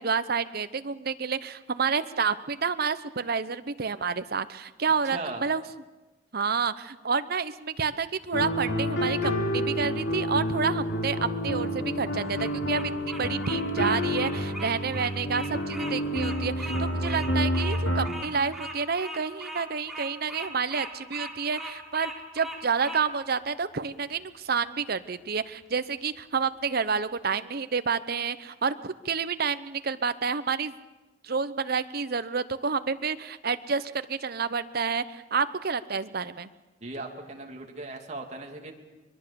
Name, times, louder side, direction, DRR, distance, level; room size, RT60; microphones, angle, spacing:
voice 1, 0.0-5.6 6.3-30.7 31.2-36.5, right 5 dB, 55° right, 13 dB, 0.9 m, -29 dB
voice 2, 5.1-5.4 36.8-38.7, right 2 dB, 40° right, 2 dB, 2.8 m, -38 dB
sound 1, 8.3-18.1, equal, 80° left, 2.9 m, -29 dB
Bird vocalization bird call bird song, 12.2-23.0, right 1 dB, ahead, 3.4 m, -39 dB
24.5 x 22.0 x 7.0 m, 1.1 s
head